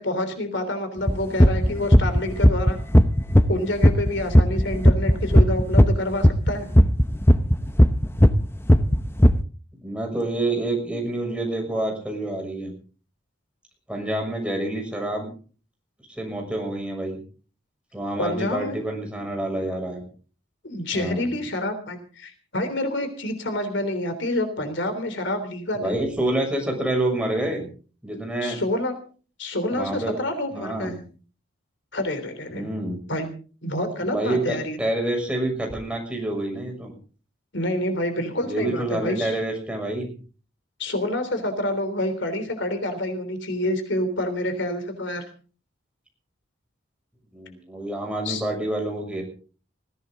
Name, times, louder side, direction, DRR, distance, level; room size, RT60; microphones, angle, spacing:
voice 1, 0.0-2.8 3.5-6.7 18.2-18.8 20.6-26.0 28.4-29.0 29.4-30.9 31.9-32.7 33.1-33.3 33.6-34.8 37.5-39.4 40.8-45.2 48.3-48.4, left 1 dB, 65° left, 9 dB, 3.5 m, -27 dB
sound 1, 1.1-3.6 3.8-5.9 6.2-8.4 8.7-9.3, equal, 10° left, 0.8 m, -14 dB
voice 2, 7.4-7.7 9.8-12.7 13.9-15.3 16.1-17.2 17.9-20.0 20.9-21.3 25.7-27.7 28.0-28.6 29.7-30.2 30.5-31.0 32.5-33.0 34.0-36.9 38.4-40.1 47.3-49.2, right 1 dB, 5° right, 1 dB, 6.5 m, -27 dB
21.0 x 16.5 x 3.9 m, 0.40 s
head